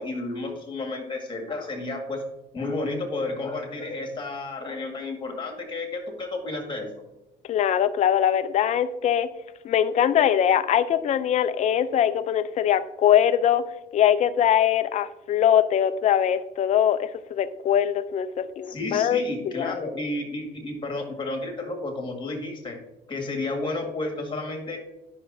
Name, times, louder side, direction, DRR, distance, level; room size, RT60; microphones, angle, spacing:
voice 1, 0.0-2.2 2.5-6.9 18.7-22.8 23.1-24.8, left 2 dB, 30° left, 3 dB, 1.8 m, -31 dB
voice 2, 7.5-9.3 9.6-13.6 13.9-19.2 19.5-19.8, left 10 dB, 45° left, 11 dB, 0.4 m, -22 dB
9.7 x 5.9 x 2.6 m, 0.93 s
cardioid pair, 110°, 17 cm